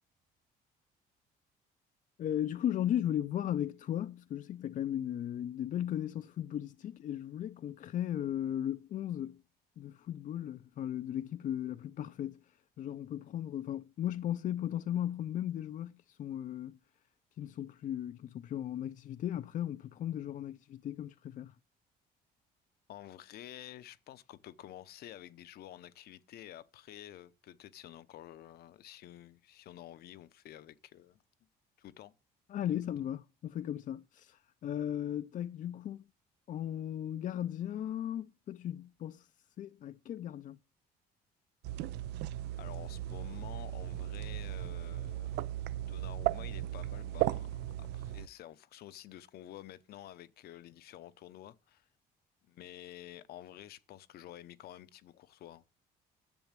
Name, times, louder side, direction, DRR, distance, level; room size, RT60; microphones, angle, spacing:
voice 1, 2.2-9.4 9.8-12.4 12.8-16.8 17.4-21.5 32.5-36.1 36.5-39.3 39.6-40.6, left 11 dB, 50° left, 0.5 m, -36 dB
voice 2, 22.9-31.2 31.8-32.1 42.6-45.3 45.7-51.9 52.5-55.6, left 13 dB, 65° left, 0.8 m, -50 dB
sound 1, 41.6-48.3, right 14 dB, 90° right, 0.6 m, -36 dB
11.0 x 7.1 x 7.4 m
cardioid pair, 110°, 17 cm